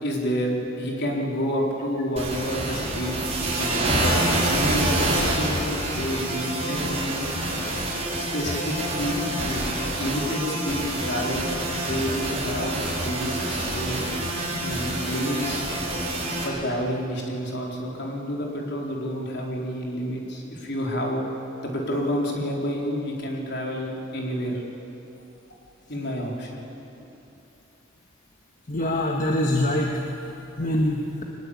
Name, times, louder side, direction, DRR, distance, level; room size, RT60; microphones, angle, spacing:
voice 1, 0.0-4.1 4.4-7.3 8.3-9.7 10.0-11.5 11.8-12.7 13.0-14.1 14.6-15.7 16.4-21.2 21.6-24.6 25.9-26.6, equal, 60° left, -1 dB, 4.4 m, -29 dB
sound 1, 2.2-16.4, right 1 dB, 30° right, 5.3 m, -27 dB
voice 2, 28.7-30.0 30.6-31.2, left 1 dB, 40° left, 1 dB, 1.6 m, -24 dB
23.5 x 20.5 x 8.6 m, 3.0 s
head